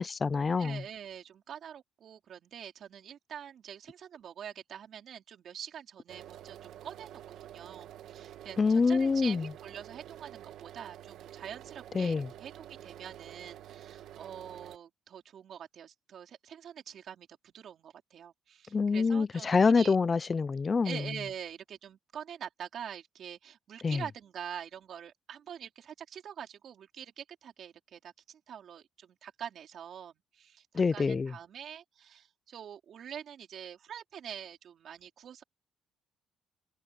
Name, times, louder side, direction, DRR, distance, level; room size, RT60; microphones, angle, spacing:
voice 1, 0.0-0.8 8.6-9.4 11.9-12.3 18.7-21.0 23.8-24.0 30.7-31.3, left 4 dB, 25° left, 0.4 m, -26 dB
voice 2, 0.6-20.0 20.8-35.4, right 9 dB, 50° right, 4.4 m, -45 dB
sound 1, 6.1-14.8, right 11 dB, 70° right, 1.3 m, -49 dB
cardioid pair, 150°, 0 cm